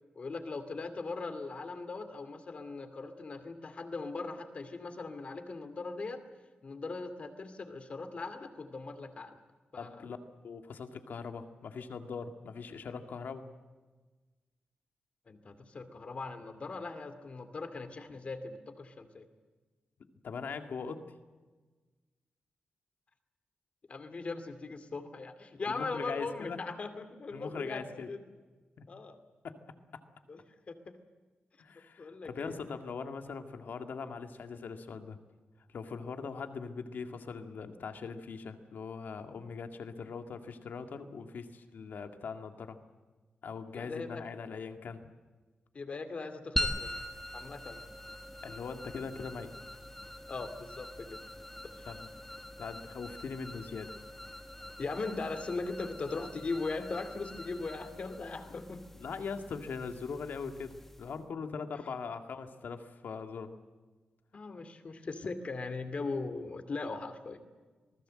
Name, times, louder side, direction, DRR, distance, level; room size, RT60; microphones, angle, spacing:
voice 1, 0.1-6.3 6.6-9.4 9.7-10.1 15.3-19.3 23.9-28.2 28.9-29.2 30.3-31.0 32.0-32.6 43.7-44.3 45.7-47.0 47.3-47.9 50.3-51.2 51.7-51.9 54.8-58.9 61.7-61.8 64.3-67.4, left 3 dB, 40° left, 9 dB, 2.4 m, -39 dB
voice 2, 9.8-10.2 10.4-13.4 20.2-21.0 25.7-26.6 27.3-28.1 28.8-28.9 29.4-29.6 31.6-35.2 35.7-42.8 43.4-45.1 48.4-49.5 51.9-52.1 52.6-53.9 59.0-63.6, left 5 dB, 65° left, 7 dB, 2.0 m, -41 dB
sound 1, 46.6-61.2, left 1 dB, 10° left, 1.6 m, -43 dB
27.0 x 19.5 x 7.7 m, 1.3 s
wide cardioid pair, 175°, 3 cm